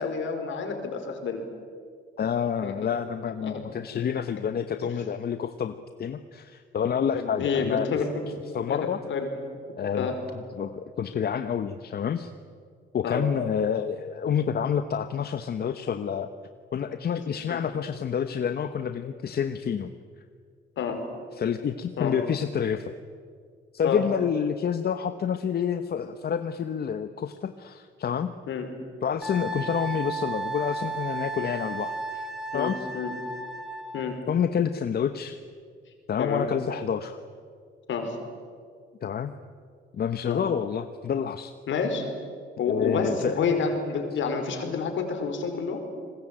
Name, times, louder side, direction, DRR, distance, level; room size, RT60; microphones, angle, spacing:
voice 1, 0.0-1.4 2.6-2.9 3.4-3.6 7.1-8.3 8.7-9.3 10.0-10.2 13.0-13.2 17.1-17.2 17.5-17.6 20.8-21.0 22.0-22.1 23.8-24.0 28.5-28.7 32.5-33.1 33.9-34.2 36.2-36.5 37.9-38.2 40.2-40.4 41.7-42.1 42.6-45.8, left 5 dB, 70° left, 5 dB, 4.8 m, -29 dB
voice 2, 2.2-7.9 8.5-9.0 9.8-10.1 10.6-12.3 12.9-16.3 16.7-19.9 21.3-22.9 23.7-28.3 29.0-32.3 32.5-32.8 34.3-35.4 36.1-37.2 39.0-39.3 39.9-41.5 42.7-43.4, left 7 dB, 50° left, 9 dB, 1.1 m, -28 dB
Wind instrument woodwind instrument, 29.2-34.1, right 3 dB, ahead, 3.4 m, -34 dB
29.0 x 21.0 x 9.0 m, 2.1 s
cardioid pair, 90°, 20 cm